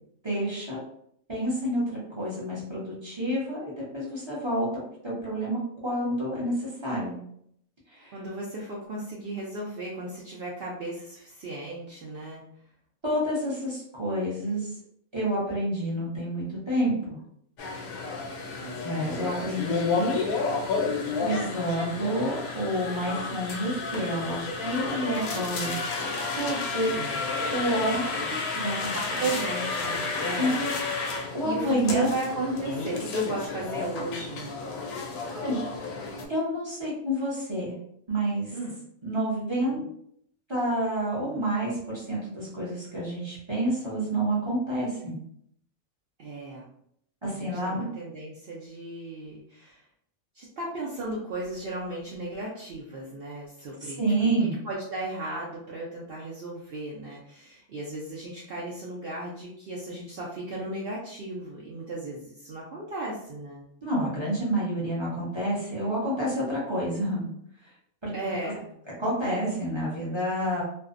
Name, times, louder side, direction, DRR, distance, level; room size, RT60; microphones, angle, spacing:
voice 1, 0.2-0.8 1.3-7.2 7.9-8.1 13.0-14.7 15.1-17.2 18.8-20.3 21.2-25.8 26.3-27.0 27.5-29.2 30.4-30.7 31.3-32.1 35.2-36.0 36.3-37.7 38.1-38.5 39.0-39.9 40.5-45.2 47.2-47.9 53.8-54.6 63.8-67.3 68.0-68.3 69.0-70.6, right 1 dB, 30° right, -7 dB, 0.5 m, -29 dB
voice 2, 8.1-12.4 18.5-18.9 27.0-27.2 28.9-30.6 31.4-34.6 38.5-38.7 46.2-46.7 47.3-49.9 50.3-63.7 68.1-68.7, right 2 dB, 75° right, -5 dB, 0.5 m, -35 dB
sound 1, 17.6-36.2, left 4 dB, 90° left, 1.1 m, -31 dB
2.5 x 2.1 x 2.4 m, 0.69 s
omnidirectional pair, 1.5 m